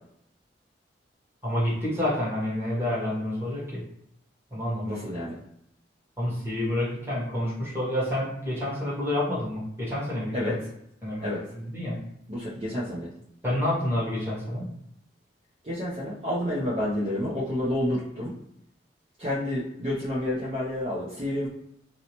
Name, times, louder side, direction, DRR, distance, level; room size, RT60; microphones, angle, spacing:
voice 1, 1.4-3.8 4.5-5.1 6.2-10.5 11.0-11.9 13.4-14.7, left 1 dB, 15° right, -8 dB, 1.1 m, -29 dB
voice 2, 4.9-5.4 10.3-10.6 11.2-11.4 12.3-13.1 15.6-18.3 19.2-21.5, left 1 dB, 35° right, -8 dB, 0.6 m, -29 dB
2.7 x 2.1 x 2.9 m, 0.76 s
head